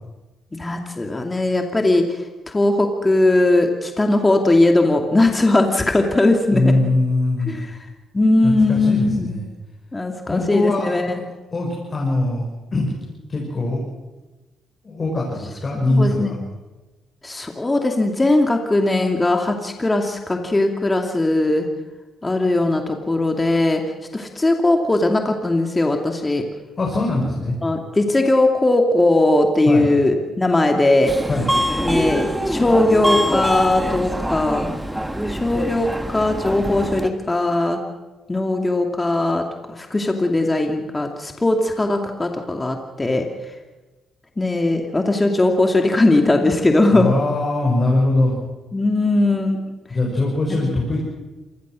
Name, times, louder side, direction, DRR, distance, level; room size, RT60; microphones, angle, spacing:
voice 1, 0.6-2.0 2.5-6.7 7.5-7.6 8.1-9.3 9.9-11.2 15.9-16.3 17.2-21.7 22.2-23.8 24.1-26.4 27.6-31.1 31.8-34.7 35.3-37.8 38.3-39.4 39.8-43.3 44.4-47.1 48.7-49.6 50.5-50.6, left 2 dB, 20° left, 3 dB, 2.5 m, -19 dB
voice 2, 6.5-7.6 8.4-9.5 10.2-11.2 11.5-12.4 12.7-12.9 13.3-13.8 14.8-16.4 26.8-27.6 29.7-29.9 31.3-31.5 46.9-48.4 49.9-51.0, left 2 dB, 35° left, -2 dB, 6.3 m, -21 dB
Subway metro underground, 31.1-37.1, equal, 5° right, 1.7 m, -24 dB
27.0 x 19.5 x 6.3 m, 1.2 s
cardioid pair, 85°, 0 cm